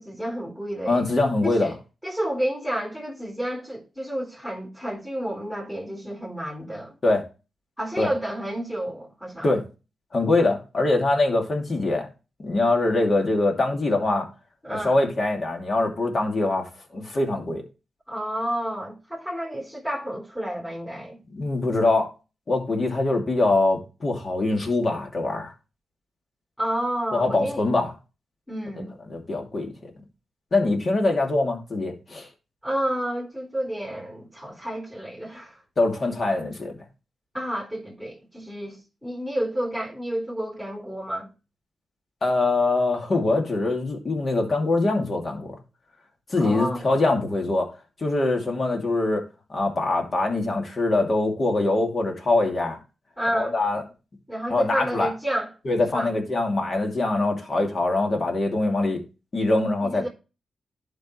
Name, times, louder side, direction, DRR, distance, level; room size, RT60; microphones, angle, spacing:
voice 1, 0.0-1.0 1.4-1.8 2.0-6.9 7.8-9.5 14.6-15.0 18.1-21.2 26.6-27.6 28.5-28.9 32.6-35.6 37.3-41.3 46.4-46.9 53.2-53.6 54.3-55.5 55.9-56.1 59.8-60.1, right 1 dB, 10° left, 4.0 m, -30 dB
voice 2, 0.9-1.7 7.0-7.2 8.0-8.1 9.4-9.6 10.1-12.1 12.4-14.3 14.7-17.6 21.3-22.1 22.5-25.5 27.1-27.9 28.7-28.8 29.1-29.7 30.5-32.3 35.8-36.8 42.2-45.5 46.3-47.7 48.0-52.8 53.3-53.8 54.5-55.1 55.6-59.0 59.3-60.1, left 2 dB, 50° left, 2.6 m, -23 dB
11.5 x 5.3 x 3.3 m
cardioid pair, 55°, 0 cm